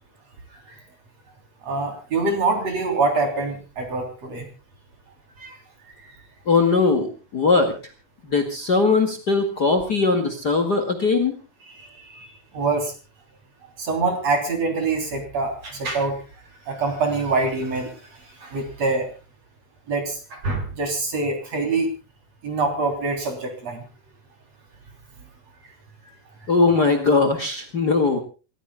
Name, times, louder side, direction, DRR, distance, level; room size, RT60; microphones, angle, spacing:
voice 1, 1.6-4.5 5.4-5.6 12.0-12.3 12.5-12.9 13.8-16.2 16.7-17.9 18.4-19.1 19.9-21.9 22.4-23.8, right 3 dB, 45° right, 4 dB, 4.3 m, -25 dB
voice 2, 6.5-7.7 8.2-11.3 26.5-28.2, left 4 dB, 35° left, 8 dB, 2.1 m, -20 dB
28.0 x 15.0 x 2.3 m, 0.33 s
omnidirectional pair, 4.0 m